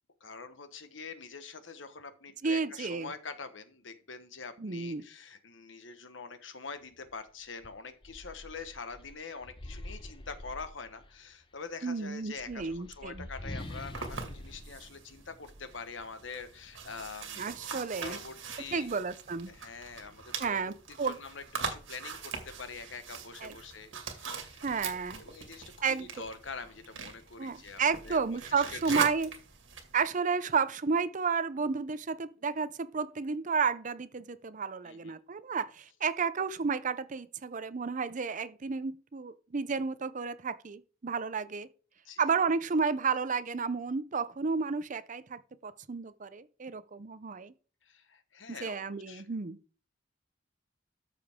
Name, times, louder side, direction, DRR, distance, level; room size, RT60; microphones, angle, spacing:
voice 1, 0.2-17.5 18.0-18.9 19.5-24.6 25.2-28.2 28.5-29.0 34.8-35.2 42.0-42.2 47.8-49.3, left 4 dB, 75° left, 1.3 m, -45 dB
voice 2, 2.4-3.1 4.6-5.0 11.8-13.3 17.4-18.2 18.7-19.5 20.4-21.2 23.4-23.5 24.6-25.2 25.8-26.1 27.4-29.3 29.9-41.7 42.2-47.5 48.5-49.6, right 5 dB, 40° right, 0.6 m, -32 dB
sound 1, 7.1-7.2 7.6-11.2 12.2-15.8, left 1 dB, 25° left, 0.9 m, -45 dB
sound 2, 13.6-30.0, right 5 dB, 80° right, 2.1 m, -42 dB
13.5 x 6.8 x 3.6 m
head